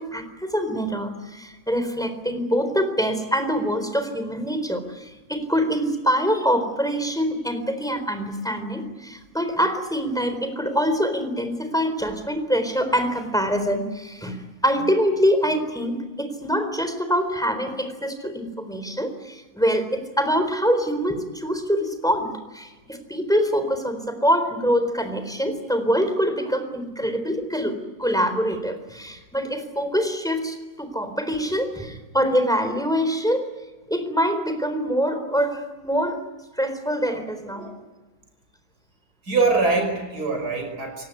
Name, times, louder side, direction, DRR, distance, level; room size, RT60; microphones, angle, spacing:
voice 1, 0.0-33.5 33.9-36.2 36.6-37.7, equal, ahead, 8 dB, 4.0 m, -24 dB
voice 2, 39.2-41.0, right 3 dB, 60° right, 4 dB, 6.1 m, -23 dB
28.5 x 18.0 x 9.7 m, 1.2 s
omnidirectional pair, 1.9 m